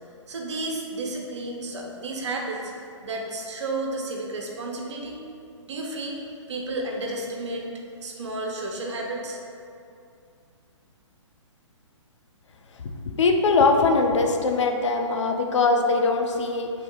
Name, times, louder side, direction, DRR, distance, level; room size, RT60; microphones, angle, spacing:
voice 1, 0.3-2.7 3.0-5.2 5.7-6.2 6.5-7.6 8.0-9.4, right 2 dB, 65° right, 0 dB, 0.7 m, -32 dB
voice 2, 13.0-16.7, left 3 dB, 70° left, 4 dB, 0.5 m, -21 dB
3.5 x 2.8 x 3.8 m, 2.5 s
hypercardioid pair, 135°, 16 cm